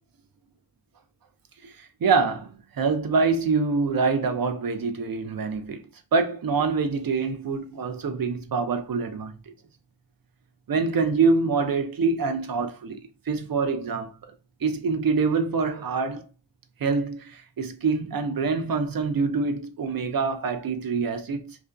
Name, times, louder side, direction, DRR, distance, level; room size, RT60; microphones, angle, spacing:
voice 1, 1.6-2.5 2.8-5.8 6.1-9.3 10.7-13.0 13.3-14.1 14.6-16.3 16.8-21.6, right 4 dB, 55° right, 0.5 m, -25 dB
2.4 x 2.2 x 2.4 m
wide cardioid pair, 65°, 44 cm